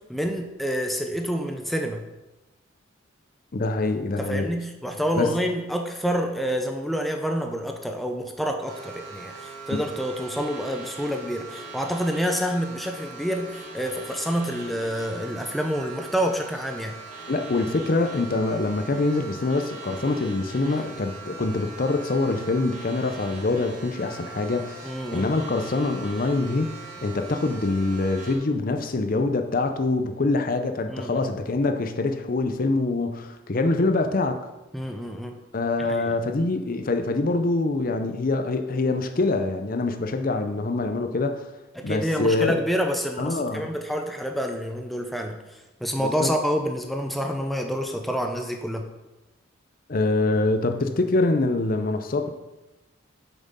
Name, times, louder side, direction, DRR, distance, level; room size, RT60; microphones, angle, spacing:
voice 1, 0.1-2.0 4.2-17.0 20.7-20.9 24.8-25.3 30.9-31.2 34.7-35.4 35.8-36.1 41.8-45.4 45.8-48.9, equal, ahead, 3 dB, 0.6 m, -28 dB
voice 2, 3.5-4.5 5.2-5.4 9.7-9.8 17.3-34.4 35.5-41.5 41.8-42.6 43.2-43.7 46.0-46.3 49.9-52.3, left 2 dB, 45° left, 7 dB, 0.6 m, -25 dB
sound 1, 8.7-28.4, right 4 dB, 40° right, 2.2 m, -41 dB
7.3 x 6.0 x 5.4 m, 1.0 s
head